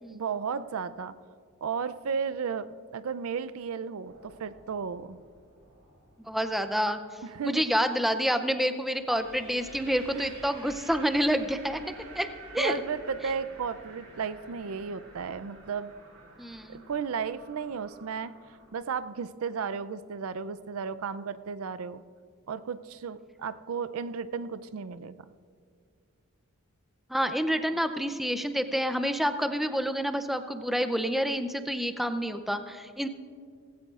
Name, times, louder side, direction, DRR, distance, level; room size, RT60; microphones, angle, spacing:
voice 1, 0.1-1.1 1.6-2.7 2.9-5.2 7.2-7.6 10.1-10.3 12.2-15.9 16.7-18.3 18.7-22.0 22.5-25.1, right 6 dB, 70° right, 15 dB, 0.4 m, -34 dB
sound 1, 4.0-6.9 8.9-18.7, right 2 dB, 85° right, 3.9 m, -50 dB
voice 2, 6.2-7.0 7.4-11.8 12.1-12.3 12.5-12.7 16.4-16.8 27.1-33.1, equal, ahead, 9 dB, 0.4 m, -28 dB
18.0 x 16.0 x 2.4 m, 2.1 s
head